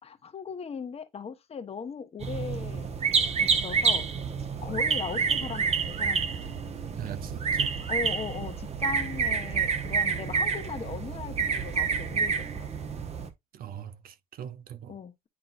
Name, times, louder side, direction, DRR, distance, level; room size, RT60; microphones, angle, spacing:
voice 1, 0.0-2.9 3.4-4.1 4.6-6.6 7.9-12.9 14.9-15.3, left 6 dB, 35° left, 1.2 m, -38 dB
sound 1, 2.2-13.3, right 5 dB, 40° right, 1.2 m, -28 dB
voice 2, 6.9-7.8 13.5-14.9, right 9 dB, 60° right, 0.8 m, -41 dB
9.9 x 3.8 x 2.6 m
cardioid pair, 110°, 17 cm